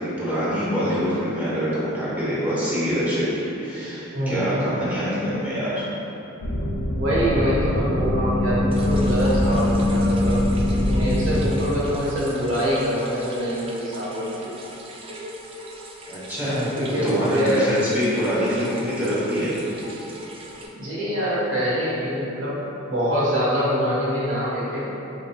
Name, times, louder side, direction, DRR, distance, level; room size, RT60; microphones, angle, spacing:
voice 1, 0.0-5.9 16.1-16.6 17.0-19.5, equal, 10° right, -10 dB, 0.9 m, -25 dB
voice 2, 4.1-4.5 6.9-10.5 10.8-14.5 16.4-17.7 20.7-22.6 22.9-24.9, equal, 70° right, -8 dB, 1.2 m, -24 dB
sound 1, 6.4-11.5, left 1 dB, 70° left, 0.6 m, -22 dB
sound 2, 8.7-20.7, right 1 dB, 25° right, 0.4 m, -40 dB
4.8 x 3.8 x 2.2 m, 3.0 s
head